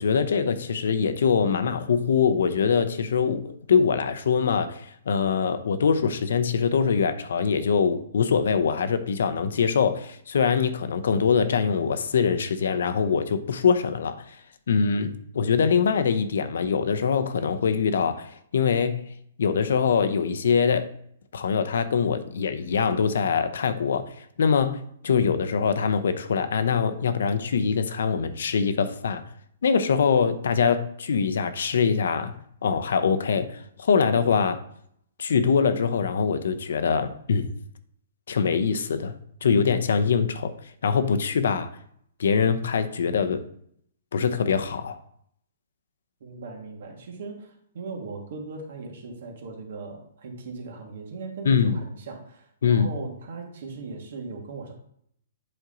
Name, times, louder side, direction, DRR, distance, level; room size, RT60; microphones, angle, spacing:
voice 1, 0.0-14.2 14.7-19.0 19.4-20.9 21.3-24.1 24.4-29.2 29.6-32.4 32.6-34.6 35.2-37.5 38.3-39.1 39.4-40.5 40.8-41.7 42.2-43.4 44.1-45.0 51.4-51.8 52.6-52.9, left 6 dB, 75° left, 0.7 m, -23 dB
voice 2, 46.2-54.7, right 4 dB, 65° right, 2.0 m, -38 dB
7.8 x 4.4 x 3.9 m
hypercardioid pair, 150°, 0 cm